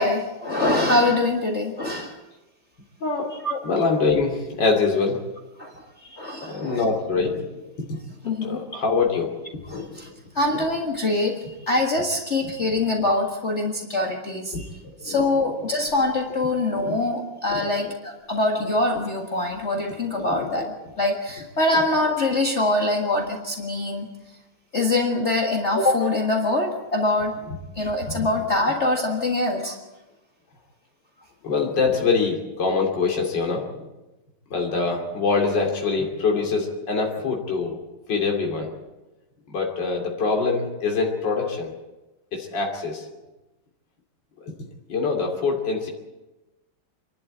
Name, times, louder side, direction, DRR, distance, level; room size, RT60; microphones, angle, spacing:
voice 1, 0.0-2.2 3.4-3.8 5.6-6.8 8.2-8.6 9.7-10.1 10.4-14.7 15.0-24.1 24.7-27.3 27.8-29.8, left 2 dB, 35° left, 1 dB, 1.9 m, -24 dB
voice 2, 3.0-3.3 3.6-5.2 6.4-8.0 8.2-10.1 10.5-10.6 14.5-14.6 15.0-15.2 16.8-17.0 17.5-17.7 20.2-20.5 21.7-21.8 31.4-33.9 34.5-37.8 38.1-38.7 39.5-41.7 42.3-43.1 44.4-44.5 44.9-45.9, left 4 dB, 60° left, 1 dB, 3.3 m, -24 dB
27.0 x 12.0 x 8.7 m, 1.1 s
omnidirectional pair, 2.2 m